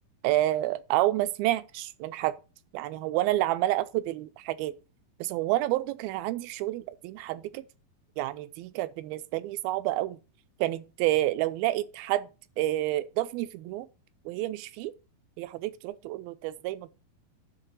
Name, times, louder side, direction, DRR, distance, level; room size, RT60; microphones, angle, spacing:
voice 1, 0.2-2.4 2.7-4.7 5.2-7.6 8.2-10.2 10.6-12.3 12.6-13.9 14.3-14.9 15.4-16.9, right 15 dB, 90° right, 2.5 m, -29 dB
10.5 x 3.7 x 7.1 m
omnidirectional pair, 4.1 m